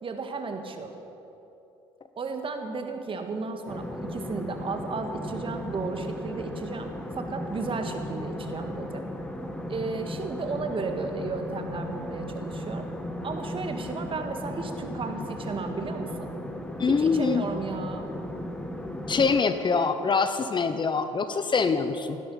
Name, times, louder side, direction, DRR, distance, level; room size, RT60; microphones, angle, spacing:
voice 1, 0.0-1.0 2.2-6.9 7.2-9.1 9.7-12.9 13.2-16.4 16.9-18.1, right 4 dB, 40° right, 5 dB, 1.9 m, -34 dB
sound 1, 3.7-19.4, left 1 dB, 5° left, 1.6 m, -36 dB
voice 2, 16.8-17.4 19.1-22.2, left 5 dB, 35° left, 10 dB, 1.0 m, -24 dB
16.5 x 12.5 x 5.9 m, 2.9 s
hypercardioid pair, 65°, 14 cm